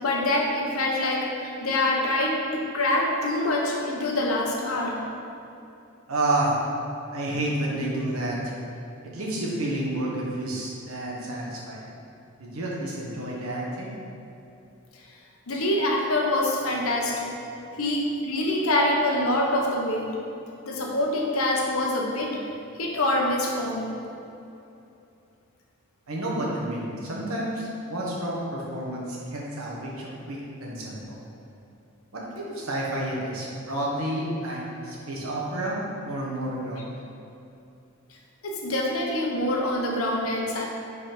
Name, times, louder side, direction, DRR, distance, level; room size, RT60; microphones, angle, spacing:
voice 1, 0.0-5.0 15.5-17.3 17.8-20.1 20.6-22.3 22.8-23.9 38.4-40.6, left 1 dB, 90° left, -1 dB, 1.0 m, -25 dB
voice 2, 6.1-6.5 7.1-8.4 9.0-11.8 12.4-13.9 26.1-31.2 32.1-35.8 36.0-37.0, right 1 dB, 90° right, -4 dB, 1.3 m, -30 dB
5.2 x 4.1 x 5.2 m, 2.8 s
head